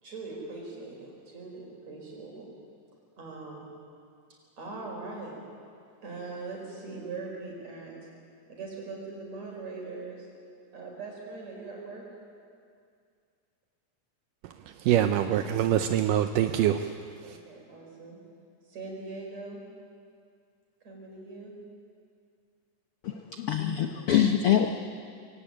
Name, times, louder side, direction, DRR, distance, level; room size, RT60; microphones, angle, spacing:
voice 1, 0.0-2.5 3.2-3.7 4.6-5.3 6.0-7.9 8.5-10.3 10.7-12.0 17.2-18.2 18.7-19.6 20.8-21.5, right 3 dB, 50° right, 6.2 m, -41 dB
voice 2, 14.8-16.9 17.3-17.4, right 11 dB, 80° right, 2.3 m, -24 dB
voice 3, 23.0-24.7, left 10 dB, 85° left, 1.2 m, -24 dB
23.5 x 17.5 x 8.8 m
omnidirectional pair, 3.9 m